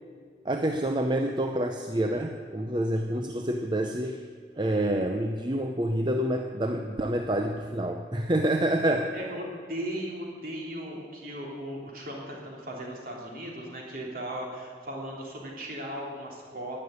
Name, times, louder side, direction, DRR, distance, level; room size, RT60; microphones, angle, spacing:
voice 1, 0.4-4.2 4.6-9.1, right 1 dB, 25° right, 5 dB, 0.6 m, -27 dB
voice 2, 8.8-16.8, equal, 50° right, -2 dB, 3.4 m, -37 dB
12.0 x 9.7 x 9.6 m, 2.1 s
head